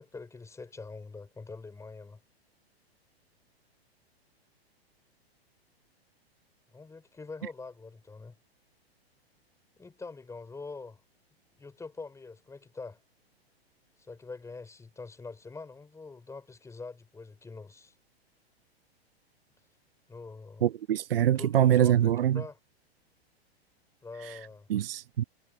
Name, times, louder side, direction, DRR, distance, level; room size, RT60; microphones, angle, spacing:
voice 1, 0.0-2.2 6.7-8.4 9.8-11.0 11.6-13.0 14.0-17.9 20.1-20.7 21.4-22.6 24.0-24.7, left 4 dB, 10° left, 5.3 m, -44 dB
voice 2, 20.6-22.4 24.7-25.2, right 11 dB, 65° right, 0.6 m, -24 dB
figure-of-eight pair, 100°, 31 cm